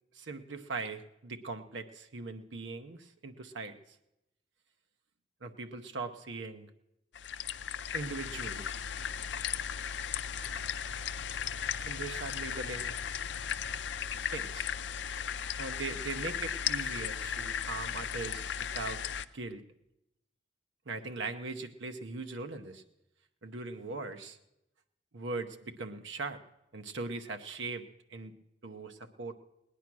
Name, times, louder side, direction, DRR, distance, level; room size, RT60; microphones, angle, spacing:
voice 1, 0.1-3.7 5.4-6.7 7.9-8.8 11.9-13.0 14.3-14.7 15.6-19.0 19.3-19.6 20.9-22.8 23.4-24.4 25.1-26.4 26.7-28.3 28.6-29.3, right 3 dB, 90° right, 7 dB, 0.9 m, -40 dB
sound 1, 7.1-19.2, left 8 dB, 70° left, 0.5 m, -36 dB
18.5 x 10.0 x 6.1 m, 0.88 s
head